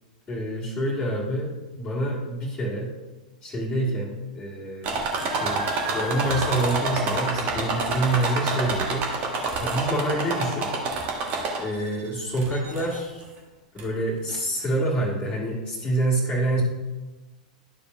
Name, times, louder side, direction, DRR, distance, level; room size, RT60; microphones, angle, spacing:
voice 1, 0.3-2.9 3.4-5.0 5.4-5.6 5.9-10.7 11.6-13.3 13.7-16.6, right 1 dB, 15° left, -9 dB, 1.9 m, -27 dB
sound 1, 4.8-11.9 12.4-13.0 13.8-13.9 14.3-14.4, right 3 dB, 40° right, 1.4 m, -28 dB
12.0 x 6.9 x 2.5 m, 1.2 s
figure-of-eight pair, 90°, 4 cm